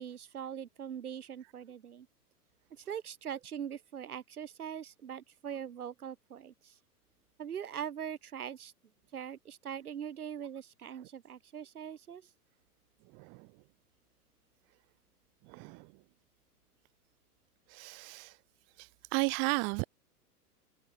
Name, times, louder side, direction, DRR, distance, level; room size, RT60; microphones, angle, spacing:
voice 1, 0.0-2.1 2.7-6.8 7.4-8.7 9.1-12.3, right 8 dB, 70° right, 2.7 m, -42 dB
voice 2, 13.1-13.5 15.5-15.9 17.7-18.3 18.8-19.9, right 35 dB, 25° right, 0.7 m, -34 dB
figure-of-eight pair, 105°, 47 cm